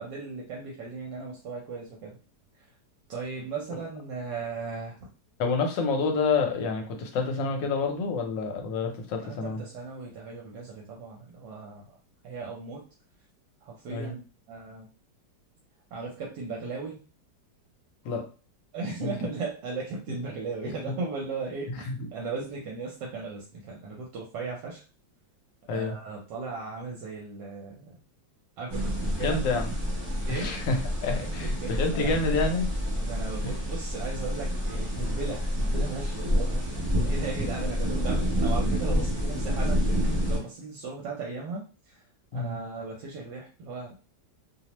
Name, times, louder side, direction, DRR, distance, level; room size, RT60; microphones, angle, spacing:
voice 1, 0.0-2.2 3.1-5.0 9.2-11.9 12.2-12.8 13.6-14.2 14.5-14.9 15.9-17.0 18.7-24.8 25.7-28.0 28.6-29.4 30.3-30.5 31.2-32.2 33.0-42.0 42.3-43.9, right 4 dB, 75° right, -2 dB, 1.2 m, -37 dB
voice 2, 5.4-9.6 13.9-14.1 18.0-18.2 19.0-19.1 21.9-22.0 25.7-25.9 29.2-29.7 30.3-30.8 31.0-32.7 33.4-33.5 42.3-42.6, left 4 dB, 80° left, 4 dB, 1.3 m, -28 dB
sound 1, 28.7-40.4, equal, 25° right, 0.6 m, -28 dB
3.0 x 2.0 x 2.9 m, 0.35 s
omnidirectional pair, 2.0 m